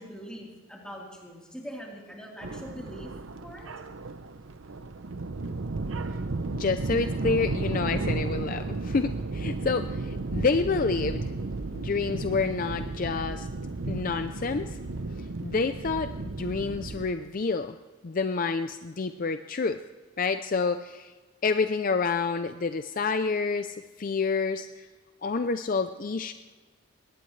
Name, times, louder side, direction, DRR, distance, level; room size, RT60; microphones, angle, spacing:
voice 1, 0.0-3.1 3.4-3.7, equal, 5° left, -3 dB, 3.6 m, -42 dB
sound 1, 2.4-17.1, right 3 dB, 70° right, 0.7 m, -33 dB
voice 2, 6.5-11.3 11.7-13.5 13.9-14.8 15.1-17.8 18.0-19.8 20.2-21.1 21.4-24.9 25.2-26.3, left 4 dB, 40° left, 9 dB, 0.5 m, -28 dB
21.5 x 18.0 x 3.2 m, 1.3 s
head